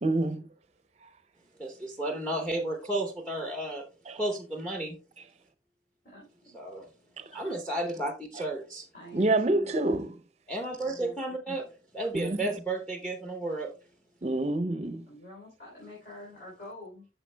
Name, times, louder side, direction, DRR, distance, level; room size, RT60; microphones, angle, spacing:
voice 1, 0.0-0.5 4.1-4.2 7.2-7.3 9.1-10.2 12.1-12.4 14.2-15.0, right 2 dB, 40° right, 0.6 m, -27 dB
voice 2, 1.6-3.8 4.2-5.0 6.5-6.9 7.3-8.9 10.5-13.7, right 1 dB, 5° left, 0.8 m, -33 dB
voice 3, 6.0-6.6 8.9-10.0 15.1-17.1, left 1 dB, 55° left, 3.2 m, -47 dB
10.5 x 6.6 x 2.2 m
head